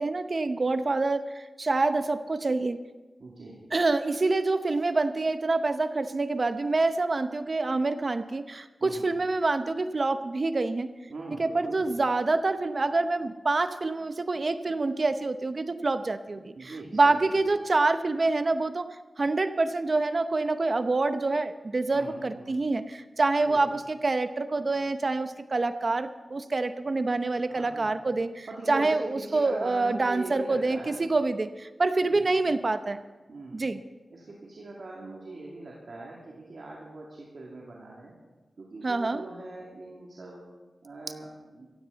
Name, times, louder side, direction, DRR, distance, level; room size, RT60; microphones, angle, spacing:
voice 1, 0.0-2.8 3.7-10.9 11.4-16.5 16.9-33.0 33.5-33.8 38.8-39.2, right 3 dB, 55° right, 11 dB, 0.8 m, -26 dB
voice 2, 3.2-3.6 8.8-9.1 11.1-12.0 16.6-17.3 21.9-22.6 23.4-23.6 27.5-27.9 28.5-31.0 32.0-32.3 33.3-33.6 34.1-38.1 38.6-40.4 40.8-41.7, right 2 dB, 80° right, -3 dB, 2.6 m, -41 dB
16.0 x 15.5 x 4.1 m, 1.2 s
cardioid pair, 50°, 0 cm